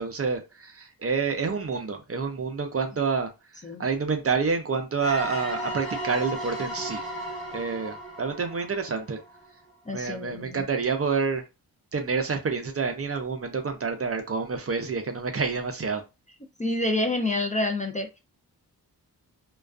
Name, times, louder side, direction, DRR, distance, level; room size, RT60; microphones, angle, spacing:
voice 1, 0.0-3.3 3.8-7.0 7.5-9.2 9.9-11.4 11.9-16.0, right 5 dB, 40° right, 0.4 m, -28 dB
sound 1, 5.0-9.6, equal, ahead, 1.2 m, -35 dB
voice 2, 9.9-10.7 16.6-18.2, left 2 dB, 20° left, 0.4 m, -28 dB
2.3 x 2.2 x 2.3 m
wide cardioid pair, 130°, 38 cm